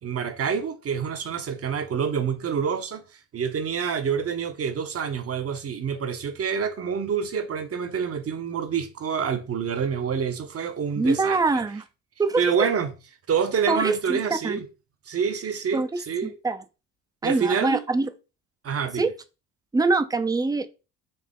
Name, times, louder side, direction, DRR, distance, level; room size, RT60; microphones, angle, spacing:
voice 1, 0.0-3.0 3.3-11.6 12.4-12.9 13.3-14.7 15.1-16.3 17.2-17.8 18.6-19.1, right 6 dB, 40° right, 0.9 m, -27 dB
voice 2, 11.0-11.8 12.2-12.7 13.7-14.6 15.7-15.9 16.2-16.6 17.2-18.1 18.9-19.1 19.7-20.7, right 3 dB, 10° right, 0.5 m, -24 dB
4.3 x 2.8 x 3.6 m
hypercardioid pair, 60°, 37 cm